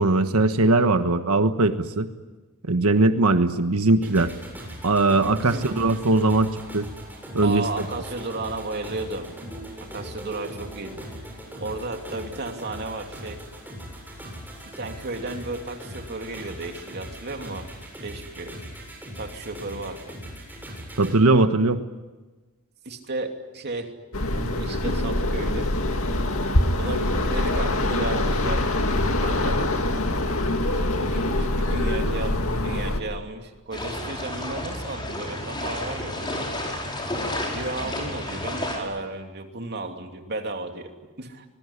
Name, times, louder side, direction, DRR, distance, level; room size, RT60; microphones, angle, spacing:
voice 1, 0.0-2.1 2.7-4.3 4.8-6.9 7.3-7.6 21.0-21.8, right 2 dB, 85° right, 8 dB, 1.3 m, -20 dB
sound 1, 4.0-21.2, equal, 10° right, 7.3 m, -40 dB
voice 2, 5.3-5.7 7.4-9.3 9.8-11.0 11.6-13.4 14.6-17.7 18.0-18.6 19.2-20.2 22.8-23.9 24.3-25.7 26.7-28.7 29.1-29.7 30.6-36.5 37.5-41.4, right 2 dB, 50° right, 4 dB, 2.9 m, -34 dB
sound 2, 24.1-33.0, left 1 dB, 70° left, 2.3 m, -24 dB
sound 3, 33.7-38.8, left 1 dB, 20° left, 5.8 m, -31 dB
25.0 x 22.0 x 9.9 m, 1.2 s
head